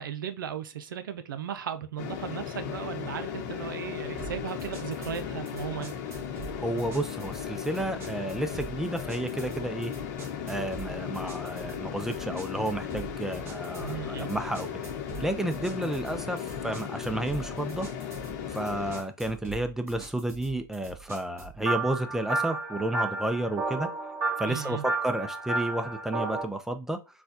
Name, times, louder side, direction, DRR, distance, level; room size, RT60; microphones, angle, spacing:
voice 1, 0.0-5.9 13.8-14.3 24.5-24.8, right 9 dB, 85° right, 0.5 m, -36 dB
sound 1, 2.0-19.0, left 8 dB, 60° left, 0.9 m, -36 dB
sound 2, 4.2-21.6, right 6 dB, 25° right, 1.3 m, -45 dB
voice 2, 6.6-9.9 10.5-14.9 15.2-17.9 18.5-23.9 24.4-27.0, right 1 dB, 5° right, 0.5 m, -31 dB
sound 3, 21.7-26.4, right 3 dB, 45° right, 1.7 m, -31 dB
4.1 x 2.3 x 2.7 m
hypercardioid pair, 105°, 11 cm